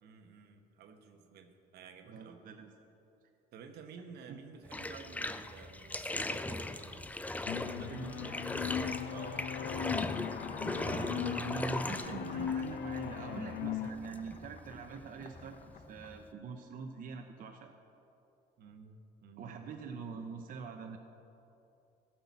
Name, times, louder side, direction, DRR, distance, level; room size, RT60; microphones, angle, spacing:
voice 1, 0.0-2.4 3.5-7.1 7.5-9.5 18.6-19.6 19.9-20.1, right 5 dB, 70° right, 6 dB, 1.1 m, -52 dB
voice 2, 2.0-2.7 4.3-4.4 7.9-8.2 10.7-17.7 19.4-21.0, right 5 dB, 55° right, 3 dB, 0.9 m, -44 dB
Bathtub (filling or washing), 4.7-16.3, left 2 dB, 10° left, 0.5 m, -39 dB
sound 1, 7.5-13.9, left 10 dB, 80° left, 0.6 m, -39 dB
sound 2, 8.2-16.4, left 6 dB, 50° left, 0.9 m, -47 dB
14.5 x 6.0 x 7.2 m, 2.8 s
cardioid pair, 110°, 17 cm